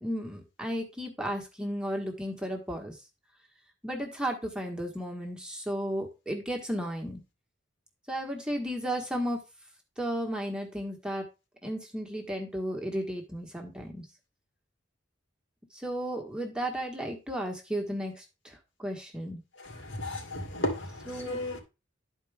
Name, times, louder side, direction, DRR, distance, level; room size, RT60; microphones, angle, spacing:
voice 1, 0.0-2.9 3.8-7.2 8.1-9.4 10.0-11.2 11.6-14.0 15.7-19.4 21.1-21.4, equal, 5° right, 1.5 m, -34 dB
voice 2, 19.9-21.6, left 1 dB, 80° left, 2.4 m, -33 dB
12.0 x 4.6 x 3.5 m
head